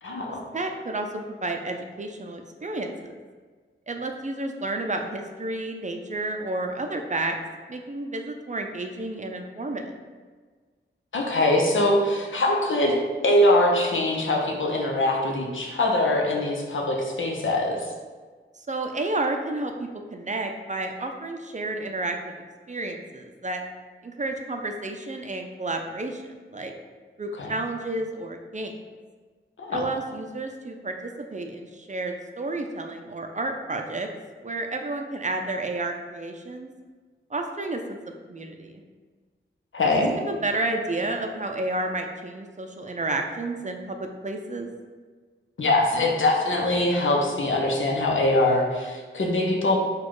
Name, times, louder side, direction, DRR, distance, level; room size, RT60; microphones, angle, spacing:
voice 1, 0.0-0.4 11.1-13.0 13.2-17.9 27.4-27.5 29.6-29.8 39.7-40.1 45.6-49.8, left 1 dB, 70° left, 0 dB, 0.8 m, -23 dB
voice 2, 0.5-3.1 3.9-7.4 7.7-10.0 18.6-22.3 22.7-23.7 24.0-26.7 27.2-28.8 29.7-34.1 34.4-36.7 37.3-38.0 38.3-38.8 39.8-44.7, right 2 dB, 35° right, 4 dB, 0.5 m, -31 dB
4.2 x 2.3 x 4.7 m, 1.5 s
wide cardioid pair, 55°, 20 cm